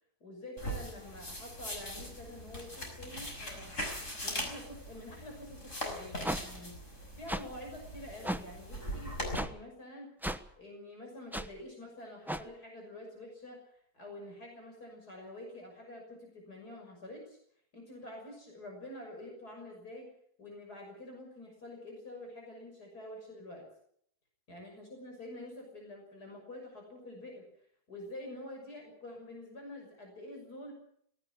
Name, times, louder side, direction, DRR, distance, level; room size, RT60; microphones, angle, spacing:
voice 1, 0.2-3.7 4.2-6.7 7.2-10.1 10.6-17.4 17.7-20.1 20.4-23.7 24.5-27.5 27.9-30.7, left 1 dB, 80° left, 1 dB, 6.9 m, -47 dB
sound 1, 0.6-9.3, equal, 50° left, 6.4 m, -41 dB
sound 2, 6.2-6.4 7.3-7.4 8.2-8.4 9.3-9.5 10.2-10.4 11.3-11.5 12.3-12.4, right 1 dB, ahead, 0.8 m, -34 dB
18.5 x 18.0 x 8.4 m, 0.67 s
omnidirectional pair, 1.7 m